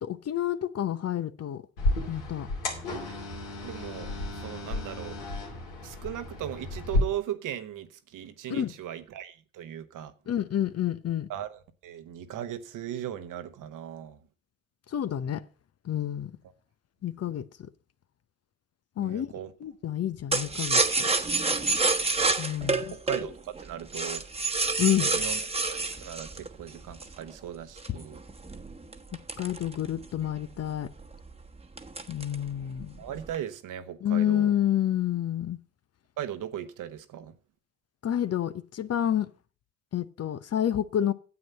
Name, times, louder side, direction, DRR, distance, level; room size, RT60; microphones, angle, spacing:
voice 1, 0.0-1.6 2.1-2.5 8.5-8.7 10.3-11.3 14.9-15.4 15.8-16.3 17.0-17.7 19.0-19.3 19.6-21.0 22.4-22.9 24.8-25.1 29.4-30.9 32.1-33.0 34.0-35.6 38.0-39.3 39.9-41.1, left 11 dB, 45° left, 0.8 m, -29 dB
sound 1, 1.8-7.0, left 1 dB, 85° left, 2.7 m, -32 dB
voice 2, 3.6-4.1 4.4-5.2 5.8-10.1 11.3-14.2 19.0-19.5 22.9-24.2 25.0-25.4 25.7-28.2 33.0-34.5 36.2-37.3, right 10 dB, 65° right, 1.2 m, -38 dB
sound 2, 20.3-27.2 27.8-30.2 30.6-30.7 31.0-31.3 31.8-32.5 32.8-33.4, right 3 dB, 15° right, 1.2 m, -28 dB
9.6 x 7.9 x 5.5 m
hypercardioid pair, 50°, 34 cm